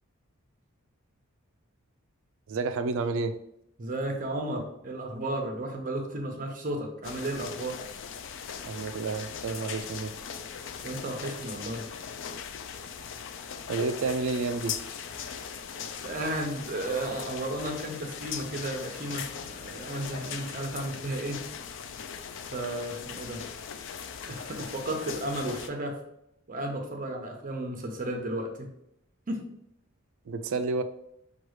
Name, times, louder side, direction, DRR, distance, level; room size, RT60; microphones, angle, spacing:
voice 1, 2.5-3.3 8.6-10.1 13.7-14.7 30.3-30.8, right 4 dB, 65° right, 10 dB, 0.4 m, -30 dB
voice 2, 3.8-7.8 10.8-11.9 16.0-21.4 22.5-23.4 24.3-26.0 26.5-28.7 29.3-29.5, right 1 dB, 40° right, 3 dB, 0.7 m, -33 dB
sound 1, 7.0-25.7, left 7 dB, 60° left, 0.4 m, -39 dB
6.0 x 2.3 x 3.1 m, 0.78 s
head